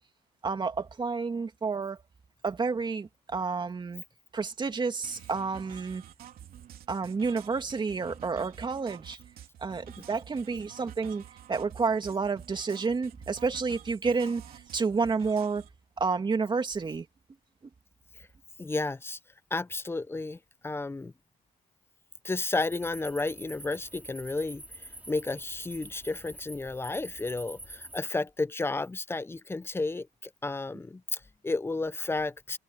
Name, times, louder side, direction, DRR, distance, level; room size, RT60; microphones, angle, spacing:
voice 1, 0.4-2.0 2.4-4.0 4.3-6.0 6.9-9.2 9.6-11.2 11.5-15.6 16.0-17.1, right 4 dB, 25° right, 2.5 m, -30 dB
sound 1, 5.0-15.7, right 11 dB, 60° right, 3.2 m, -49 dB
voice 2, 18.6-19.2 19.5-21.1 22.2-24.6 25.1-32.6, left 3 dB, 15° left, 0.7 m, -32 dB
sound 2, 22.5-28.0, right 1 dB, 10° right, 4.4 m, -46 dB
cardioid pair, 110°, 17 cm